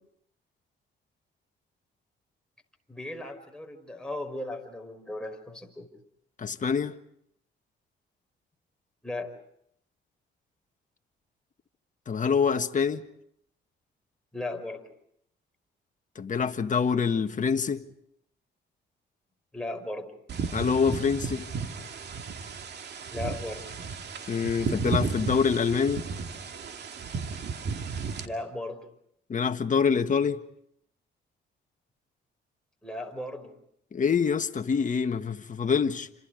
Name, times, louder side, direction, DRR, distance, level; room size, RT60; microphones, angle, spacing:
voice 1, 2.9-5.9 9.0-9.3 14.3-14.8 19.5-20.1 23.1-23.7 28.2-28.8 32.8-33.5, left 2 dB, 5° left, 5.3 m, -36 dB
voice 2, 6.4-6.9 12.1-13.0 16.1-17.8 20.5-21.4 24.3-26.0 29.3-30.4 33.9-36.1, left 6 dB, 40° left, 1.5 m, -25 dB
sound 1, 20.3-28.2, right 5 dB, 55° right, 2.3 m, -34 dB
29.5 x 27.0 x 5.1 m
cardioid pair, 90°, 20 cm